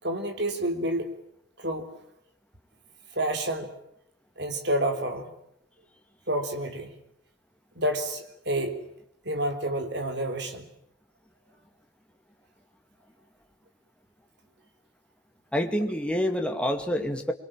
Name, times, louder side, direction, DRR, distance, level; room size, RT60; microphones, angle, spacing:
voice 1, 0.0-1.1 1.6-1.9 3.2-3.7 4.4-5.3 6.3-6.9 7.8-8.8 9.3-10.7, right 1 dB, 55° right, 6 dB, 3.6 m, -29 dB
voice 2, 15.5-17.3, equal, 5° left, 4 dB, 2.2 m, -27 dB
24.5 x 23.5 x 9.0 m, 0.76 s
head